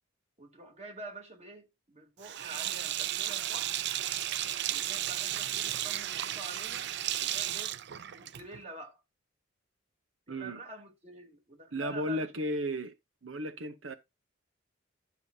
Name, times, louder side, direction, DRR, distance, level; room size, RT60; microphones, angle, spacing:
voice 1, 0.4-3.8 4.7-7.8 8.1-9.0 10.3-12.5, right 2 dB, 35° right, 3.2 m, -47 dB
Sink (filling or washing), 2.2-8.6, right 12 dB, 60° right, 0.5 m, -34 dB
voice 2, 10.3-10.6 11.7-12.9 13.2-13.9, equal, 85° right, 1.0 m, -34 dB
11.5 x 7.0 x 2.8 m
head